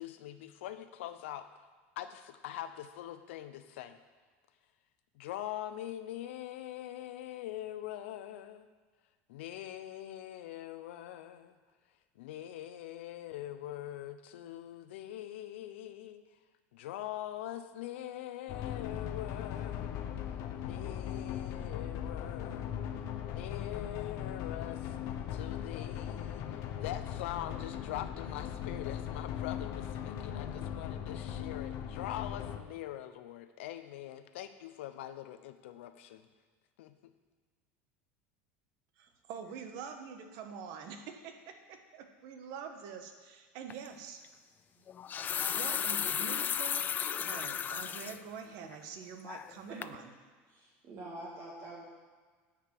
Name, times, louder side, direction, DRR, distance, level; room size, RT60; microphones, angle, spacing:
voice 1, 0.0-1.5 2.0-4.0 5.1-8.7 9.3-11.6 12.2-16.2 16.7-19.9 20.5-22.7 23.2-25.0 25.3-36.3 36.8-37.1, left 12 dB, 85° left, 10 dB, 0.8 m, -43 dB
sound 1, 18.5-32.6, left 9 dB, 55° left, 0.9 m, -39 dB
voice 2, 39.0-44.2 45.5-46.9 47.2-50.1, right 6 dB, 65° right, 6 dB, 1.3 m, -45 dB
sound 2, 43.7-43.9 44.9-48.2 48.6-48.7 49.3-49.6 49.8-50.0, left 8 dB, 30° left, 0.4 m, -34 dB
voice 3, 50.5-51.8, right 1 dB, 45° right, -3 dB, 1.8 m, -46 dB
9.9 x 5.1 x 7.6 m, 1.5 s
supercardioid pair, 125°, 6 cm